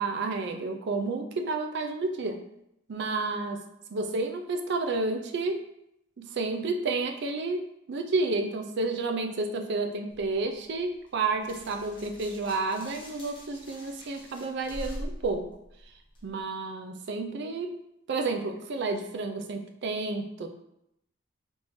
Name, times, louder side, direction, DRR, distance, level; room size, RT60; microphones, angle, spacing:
voice 1, 0.0-2.4 2.9-3.6 3.9-5.6 6.2-15.5 16.2-17.8 18.1-20.5, right 3 dB, 55° right, 5 dB, 0.4 m, -30 dB
sound 1, 10.1-16.4, equal, 25° left, 0.8 m, -44 dB
3.5 x 2.7 x 3.0 m, 0.80 s
head